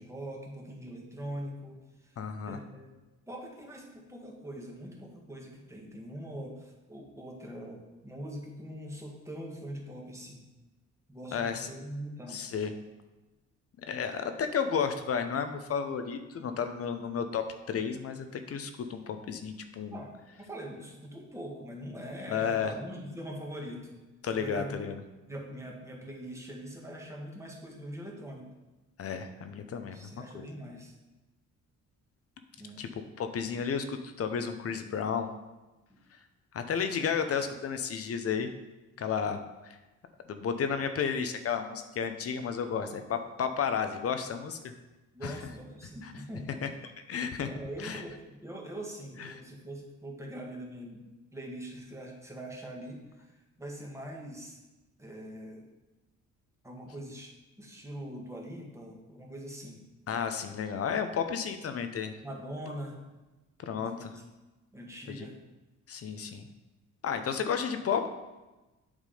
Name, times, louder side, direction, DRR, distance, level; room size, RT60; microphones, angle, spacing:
voice 1, 0.0-2.9 3.3-10.4 11.1-12.5 19.9-24.0 24.3-24.8 25.3-28.5 29.9-31.0 32.6-32.8 35.9-36.0 45.1-46.9 47.5-54.6 55.0-55.7 56.6-57.3 57.6-59.8 62.2-63.0 63.8-64.2 64.7-65.4, right 1 dB, 10° right, -1 dB, 1.6 m, -42 dB
voice 2, 2.2-2.6 11.3-11.7 12.3-12.7 13.9-20.0 22.3-22.7 24.2-25.0 29.0-30.5 32.8-32.9 33.2-35.3 36.5-38.5 39.0-39.8 40.3-44.7 45.2-45.4 46.0-46.1 46.6-46.7 47.1-47.5 47.8-48.0 49.2-49.4 60.1-62.1 63.6-64.1 65.1-65.3 65.9-66.5 67.0-68.1, left 7 dB, 50° left, 8 dB, 0.7 m, -32 dB
8.3 x 3.7 x 5.0 m, 1.1 s
cardioid pair, 90°, 30 cm